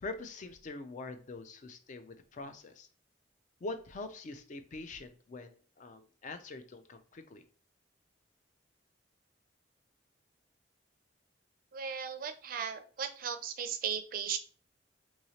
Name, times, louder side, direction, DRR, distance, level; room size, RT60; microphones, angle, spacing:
voice 1, 0.0-2.9 3.6-7.4, left 3 dB, 45° left, 9 dB, 0.4 m, -44 dB
voice 2, 11.7-14.4, right 7 dB, 50° right, 9 dB, 0.4 m, -36 dB
3.0 x 2.7 x 2.8 m, 0.41 s
head